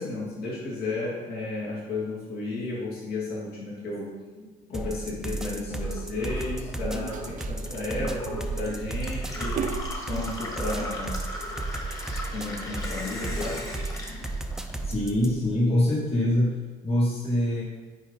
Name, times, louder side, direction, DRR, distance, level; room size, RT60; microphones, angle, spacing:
voice 1, 0.0-4.2 4.7-9.6 10.1-11.2 12.3-13.6, left 2 dB, 70° left, -6 dB, 2.4 m, -33 dB
sound 1, 4.7-15.4, right 2 dB, 5° right, 0.5 m, -34 dB
Gurgling / Water tap faucet / Sink (filling or washing), 5.7-15.2 15.5-16.4, left 1 dB, 20° left, 1.6 m, -39 dB
sound 2, 6.3-6.5 7.1-10.4 10.8-11.5, right 6 dB, 50° right, 0.6 m, -37 dB
voice 2, 9.1-10.3 11.4-11.6 13.0-13.6 14.0-14.1 14.8-16.6 16.8-17.6, left 1 dB, 35° left, -3 dB, 2.2 m, -27 dB
9.3 x 4.5 x 4.1 m, 1.4 s
cardioid pair, 110°, 17 cm